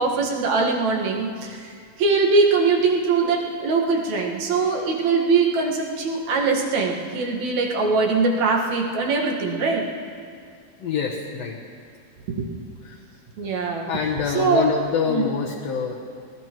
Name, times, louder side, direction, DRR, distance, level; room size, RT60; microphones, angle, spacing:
voice 1, 0.0-9.8 12.3-12.5 13.4-13.9 14.3-14.7 15.1-15.3, right 4 dB, 60° right, -1 dB, 2.7 m, -22 dB
voice 2, 10.8-11.6 12.8-13.0 13.9-16.0, left 6 dB, 60° left, -2 dB, 1.9 m, -26 dB
24.5 x 19.5 x 3.1 m, 2.2 s
omnidirectional pair, 4.1 m